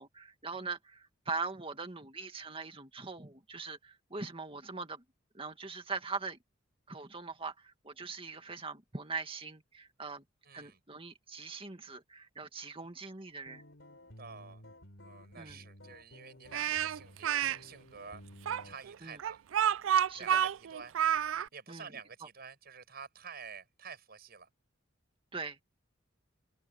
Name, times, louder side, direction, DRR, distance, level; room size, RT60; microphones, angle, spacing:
voice 1, 0.0-5.0 5.3-6.4 6.9-10.2 10.5-13.6 15.4-15.6 19.0-19.2 20.1-20.4 21.7-21.9 25.3-25.6, right 4 dB, 30° right, 2.2 m, -41 dB
voice 2, 10.4-10.8 14.2-14.6 15.0-19.4 20.2-20.9 21.5-24.5, right 6 dB, 55° right, 7.0 m, -49 dB
sound 1, 13.5-18.8, left 1 dB, 70° left, 4.5 m, -54 dB
Speech, 16.5-17.6 18.4-21.5, right 9 dB, 80° right, 0.4 m, -29 dB
open air
head